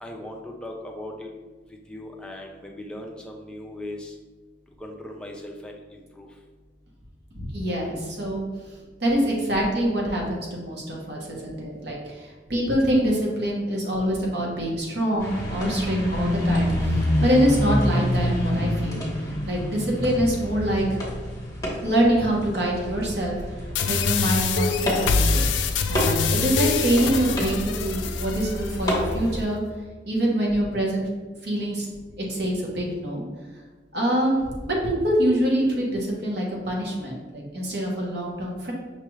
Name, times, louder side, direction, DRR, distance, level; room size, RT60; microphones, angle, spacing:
voice 1, 0.0-1.3 1.9-4.1 4.8-5.8 6.2-6.3, left 1 dB, 5° left, 0 dB, 0.4 m, -38 dB
voice 2, 7.4-8.4 9.0-19.1 19.5-21.0 21.8-23.4 23.9-25.5 25.9-29.6 30.1-31.1 31.4-31.9 32.3-33.3 33.9-38.7, equal, 60° right, -2 dB, 1.0 m, -25 dB
sound 1, 15.2-29.4, equal, 20° left, 1.0 m, -28 dB
sound 2, 23.7-28.8, left 5 dB, 75° left, 0.3 m, -25 dB
5.6 x 2.4 x 3.1 m, 1.3 s
head